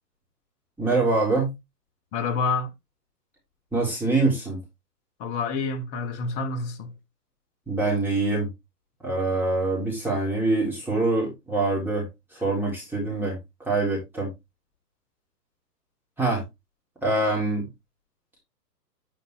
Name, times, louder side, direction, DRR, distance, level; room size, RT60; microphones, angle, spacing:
voice 1, 0.8-1.5 3.7-4.6 7.7-8.5 9.0-12.1 12.4-14.3 16.2-16.4 17.0-17.7, right 2 dB, 5° right, 3.6 m, -24 dB
voice 2, 2.1-2.7 5.2-6.9, left 4 dB, 15° left, 0.6 m, -28 dB
11.5 x 5.2 x 3.4 m
hypercardioid pair, 130°, 49 cm